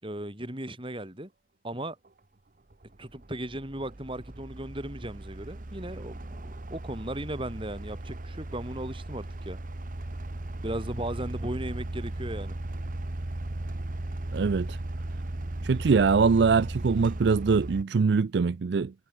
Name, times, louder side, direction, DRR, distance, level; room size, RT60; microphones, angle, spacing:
voice 1, 0.0-1.3 1.6-2.0 3.0-9.6 10.6-12.6, right 1 dB, 30° right, 6.3 m, -36 dB
sound 1, 2.1-2.2 2.7-17.8, right 1 dB, 50° right, 1.1 m, -37 dB
voice 2, 14.3-14.8 15.6-18.9, right 5 dB, 70° right, 0.4 m, -23 dB
head